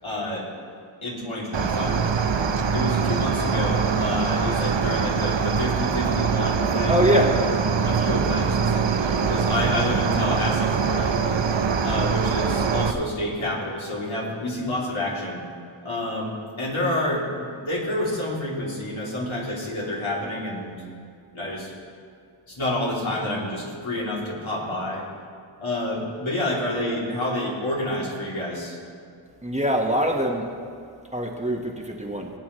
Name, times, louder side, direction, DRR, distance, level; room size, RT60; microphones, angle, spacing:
voice 1, 0.0-0.5 1.0-2.1 2.7-7.2 7.8-8.9 9.3-11.2 11.8-15.4 15.8-20.7 21.3-21.7 22.5-25.0 25.6-28.8, left 1 dB, 75° left, -5 dB, 3.1 m, -29 dB
Cricket, 1.5-12.9, right 6 dB, 65° right, 0.8 m, -23 dB
voice 2, 6.9-7.5 29.4-30.5 31.1-32.3, equal, 15° right, 0 dB, 1.3 m, -23 dB
20.5 x 8.3 x 3.2 m, 2.4 s
wide cardioid pair, 50°, 48 cm